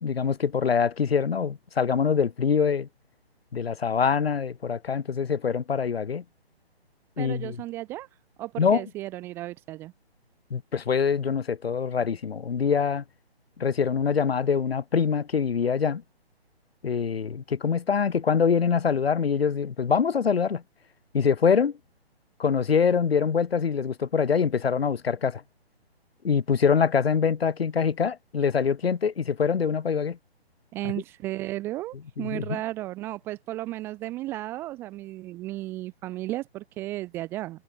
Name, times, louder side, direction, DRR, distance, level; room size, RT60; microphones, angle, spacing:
voice 1, 0.0-2.9 3.5-6.2 7.2-7.6 8.6-8.8 10.5-13.0 13.6-16.0 16.8-20.6 21.1-21.7 22.4-25.4 26.2-30.2 32.2-32.6, left 6 dB, 65° left, 1.4 m, -24 dB
voice 2, 7.2-8.1 8.4-9.9 30.7-37.6, right 16 dB, 5° right, 0.6 m, -34 dB
figure-of-eight pair, 145°, 32 cm